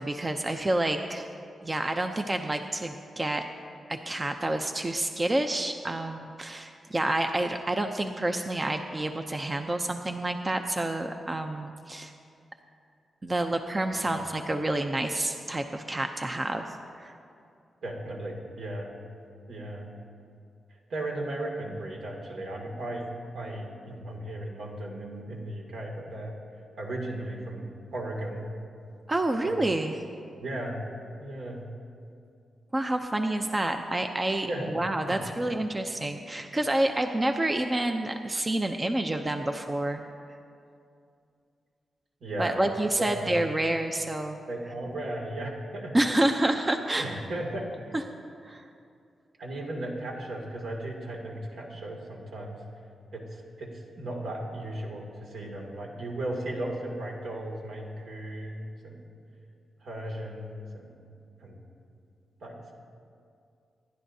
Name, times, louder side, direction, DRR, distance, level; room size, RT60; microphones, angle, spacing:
voice 1, 0.0-1.3 1.6-3.4 3.9-12.1 13.2-16.7 17.0-17.1 29.1-30.0 32.7-40.0 42.4-44.4 45.9-47.1 47.9-48.0 48.4-48.6, right 1 dB, 20° right, 5 dB, 0.5 m, -28 dB
voice 2, 17.8-19.0 19.5-19.9 20.9-23.1 23.3-26.3 26.8-27.7 27.9-28.5 29.4-29.6 30.4-30.9 31.2-31.7 34.5-34.7 35.1-35.2 42.2-42.6 43.0-43.4 44.5-45.9 47.0-48.0 49.4-52.6 53.1-53.7 54.0-59.0 59.8-61.0 61.4-61.6 62.4-62.6, right 1 dB, 75° right, -1 dB, 2.3 m, -36 dB
26.0 x 11.0 x 2.7 m, 2.5 s
wide cardioid pair, 140°, 0 cm